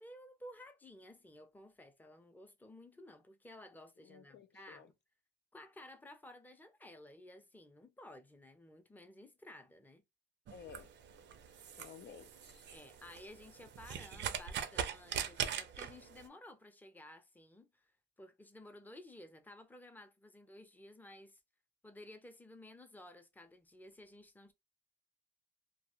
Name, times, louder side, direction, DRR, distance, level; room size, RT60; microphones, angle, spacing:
voice 1, 0.0-4.9 5.5-10.0 12.7-17.9 18.2-21.4 21.8-24.5, left 1 dB, 10° left, 0.6 m, -55 dB
voice 2, 4.0-4.9 10.5-10.9 11.7-12.7, left 7 dB, 60° left, 0.4 m, -54 dB
sound 1, 10.5-16.3, right 8 dB, 65° right, 0.5 m, -41 dB
2.3 x 2.1 x 3.1 m
cardioid pair, 90°, 20 cm